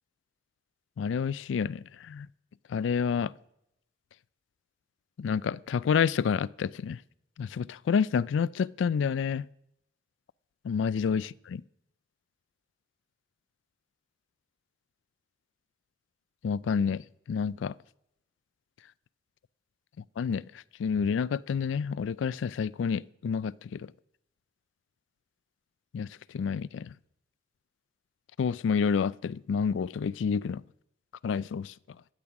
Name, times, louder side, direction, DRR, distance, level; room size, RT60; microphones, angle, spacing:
voice 1, 1.0-2.3 2.7-3.3 5.2-7.0 7.4-9.5 10.6-11.6 16.4-17.7 20.2-20.4 20.8-23.9 25.9-26.1 26.3-26.9 28.4-30.6 31.2-31.7, left 6 dB, 90° left, 0.3 m, -29 dB
12.0 x 8.8 x 5.9 m
head